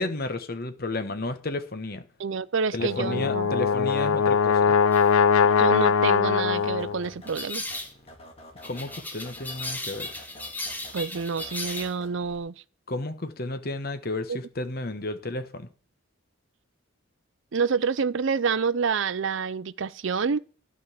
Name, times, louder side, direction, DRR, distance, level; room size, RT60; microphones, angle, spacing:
voice 1, 0.0-2.0 2.7-4.7 8.6-10.1 12.9-15.7, left 2 dB, 45° left, 1.2 m, -32 dB
voice 2, 2.2-3.6 5.4-7.6 10.9-12.5 14.3-14.4 17.5-20.4, right 5 dB, 60° right, 0.5 m, -28 dB
Brass instrument, 2.8-7.1, left 6 dB, 85° left, 0.5 m, -21 dB
sound 1, 4.9-5.1 7.3-7.9 8.6-11.9, left 2 dB, 10° left, 1.1 m, -36 dB
sound 2, 6.5-12.4, left 1 dB, 30° left, 2.4 m, -49 dB
12.0 x 5.4 x 8.1 m
head